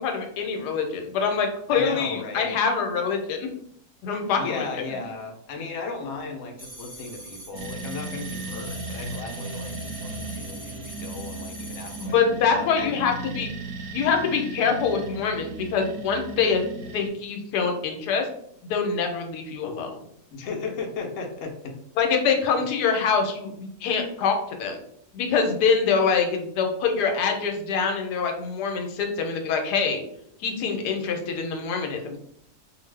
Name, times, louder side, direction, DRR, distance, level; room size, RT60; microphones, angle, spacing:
voice 1, 0.0-3.5 4.0-4.6 12.0-13.5 13.9-16.6 16.9-18.2 18.6-19.9 22.0-24.3 24.6-24.8 25.1-30.0 30.4-32.2, left 5 dB, 85° left, 4 dB, 1.2 m, -25 dB
voice 2, 1.7-2.6 4.3-13.2 20.3-21.8, left 4 dB, 65° left, 2 dB, 0.8 m, -36 dB
sound 1, 6.6-12.1, equal, 35° right, 0.9 m, -43 dB
sound 2, 7.5-17.1, right 2 dB, 70° right, 0.9 m, -36 dB
2.6 x 2.4 x 3.2 m, 0.70 s
omnidirectional pair, 1.7 m